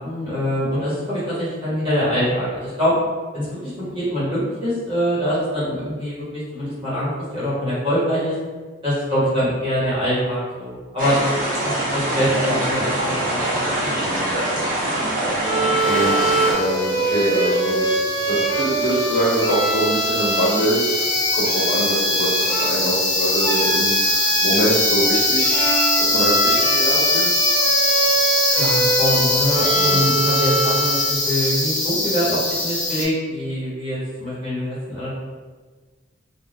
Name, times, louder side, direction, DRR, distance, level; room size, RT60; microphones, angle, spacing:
voice 1, 0.0-2.9 3.3-8.3 8.8-11.2 11.6-13.7 28.6-35.1, equal, 25° right, -11 dB, 1.1 m, -24 dB
sound 1, 11.0-16.5, right 1 dB, 45° right, 0.8 m, -23 dB
voice 2, 14.0-14.4 15.8-21.1 21.3-25.6 26.0-27.2 29.7-30.0, right 1 dB, 45° left, -13 dB, 1.4 m, -24 dB
Bowed string instrument, 15.4-31.2, right 2 dB, 10° left, 0.7 m, -24 dB
sound 2, 15.8-33.0, left 2 dB, 80° left, 0.8 m, -22 dB
3.4 x 2.4 x 2.4 m, 1.4 s
head